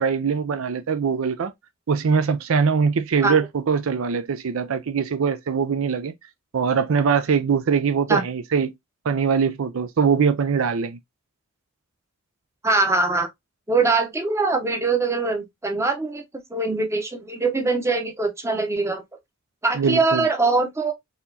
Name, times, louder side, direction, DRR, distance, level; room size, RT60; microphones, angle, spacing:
voice 1, 0.0-1.5 1.9-6.1 6.5-8.7 9.0-11.0 19.7-20.3, right 6 dB, 70° right, 0.4 m, -22 dB
voice 2, 12.6-13.3 13.7-16.2 16.5-19.0 19.6-20.9, right 3 dB, 15° right, 0.7 m, -22 dB
4.1 x 2.9 x 2.6 m
head